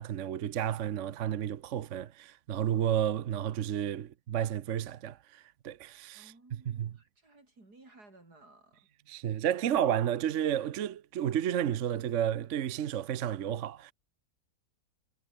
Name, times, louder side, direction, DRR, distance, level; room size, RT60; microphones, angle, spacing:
voice 1, 0.0-6.3 6.8-6.9 9.1-13.9, right 10 dB, 60° right, 1.0 m, -31 dB
voice 2, 6.1-8.9, right 2 dB, 80° right, 6.3 m, -58 dB
omnidirectional pair, 1.7 m